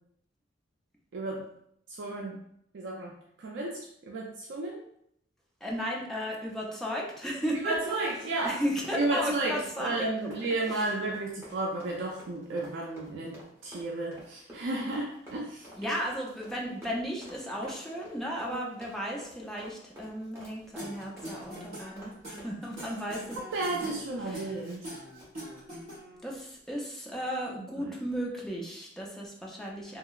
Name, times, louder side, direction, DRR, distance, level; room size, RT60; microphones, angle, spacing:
voice 1, 1.1-1.4 1.9-2.4 2.7-4.8 7.6-8.6 8.9-15.7 18.5-18.6 23.5-25.0 27.6-28.0, right 2 dB, 65° right, -1 dB, 0.4 m, -33 dB
voice 2, 5.6-7.7 8.4-9.9 10.7-10.9 15.8-23.4 23.8-24.0 24.2-24.5 26.2-30.0, equal, 5° left, -3 dB, 0.5 m, -35 dB
Run, 7.4-24.8 25.1-25.3, equal, 15° right, 0.9 m, -50 dB
sound 1, 20.8-26.3, equal, 40° right, 1.4 m, -43 dB
2.9 x 2.8 x 2.3 m, 0.72 s
head